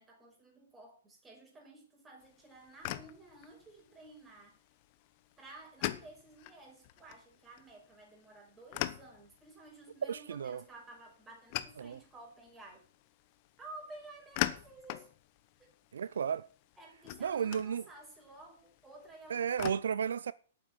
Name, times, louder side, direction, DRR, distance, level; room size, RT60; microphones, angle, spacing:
voice 1, 0.0-4.6 5.4-12.9 13.6-15.1 15.6-15.7 16.8-19.7, right 2 dB, 15° right, 5.6 m, -53 dB
sound 1, 2.2-19.7, left 16 dB, 40° left, 1.0 m, -44 dB
voice 2, 10.0-10.6 11.8-12.0 15.9-16.5 17.2-17.8 19.3-20.3, right 7 dB, 80° right, 0.5 m, -33 dB
8.9 x 8.5 x 8.8 m
hypercardioid pair, 140°, 0 cm